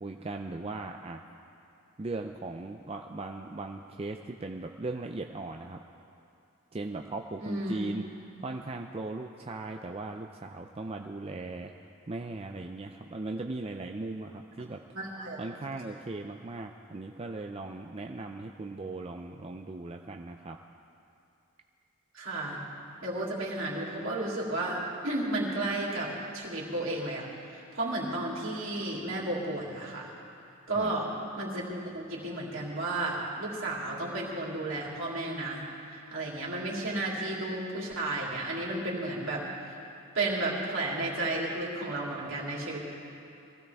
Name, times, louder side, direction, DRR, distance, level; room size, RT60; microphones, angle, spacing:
voice 1, 0.0-1.2 2.0-5.8 6.7-8.0 8.4-11.7 12.1-14.8 15.4-20.6 30.8-30.9, right 2 dB, 30° right, 3 dB, 0.5 m, -38 dB
voice 2, 7.4-7.8 14.1-14.2 14.9-15.4 22.1-22.6 23.0-30.1 30.7-31.1 31.4-35.6 35.9-39.4 40.1-42.8, right 2 dB, 70° right, -4 dB, 3.2 m, -33 dB
23.0 x 16.0 x 3.5 m, 2.6 s
head